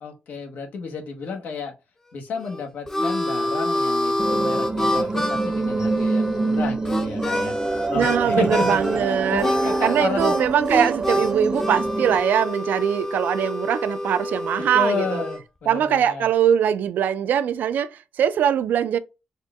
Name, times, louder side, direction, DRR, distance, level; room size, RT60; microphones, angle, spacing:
voice 1, 0.0-1.7 2.1-7.5 7.9-10.3 14.7-16.3, left 4 dB, 85° left, 1.0 m, -31 dB
Harmonica, 2.4-8.2 8.5-9.0 9.4-15.4, left 1 dB, 15° left, 0.6 m, -27 dB
sound 1, 4.2-12.2, right 3 dB, 25° right, 0.6 m, -26 dB
voice 2, 7.9-9.5 9.8-15.2 15.7-19.0, right 9 dB, 85° right, 0.4 m, -22 dB
4.2 x 2.2 x 3.5 m
cardioid pair, 105°, 3 cm